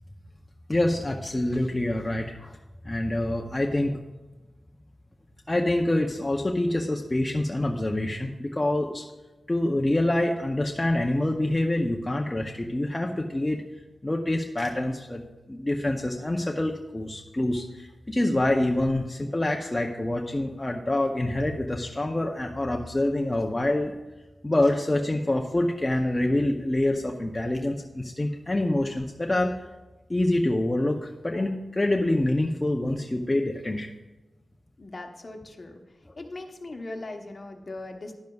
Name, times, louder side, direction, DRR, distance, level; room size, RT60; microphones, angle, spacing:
voice 1, 0.7-2.6 2.9-4.0 5.5-9.0 9.5-13.6 14.0-15.2 15.5-23.9 24.4-29.5 30.1-33.9, left 1 dB, 20° left, 1 dB, 0.6 m, -26 dB
voice 2, 34.8-35.8 36.2-38.1, left 2 dB, 45° left, 4 dB, 1.0 m, -39 dB
10.5 x 10.5 x 2.3 m, 1.1 s
wide cardioid pair, 75°, 0 cm